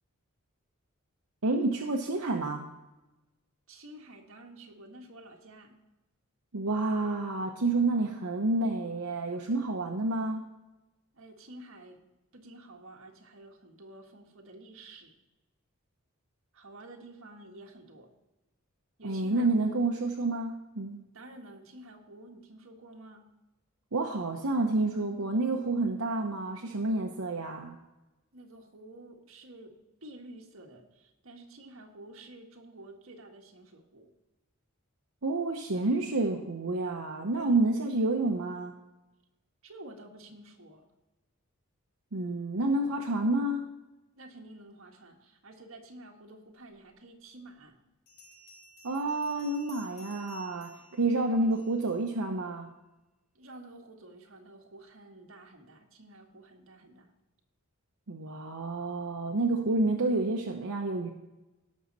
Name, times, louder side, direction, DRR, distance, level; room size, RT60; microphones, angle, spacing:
voice 1, 1.4-2.7 6.5-10.5 19.0-21.0 23.9-27.8 35.2-38.7 42.1-43.7 48.8-52.8 58.1-61.1, right 2 dB, 90° right, 1 dB, 0.9 m, -29 dB
voice 2, 3.7-5.8 11.1-12.0 12.3-15.1 16.5-18.1 19.0-19.8 21.1-23.3 28.3-29.8 30.0-34.1 37.3-37.6 39.6-40.9 44.2-47.8 53.4-57.1, right 1 dB, 70° right, 1 dB, 1.7 m, -50 dB
Bell, 48.1-51.9, equal, 70° left, 4.0 m, -54 dB
17.5 x 6.5 x 4.1 m, 1.0 s
head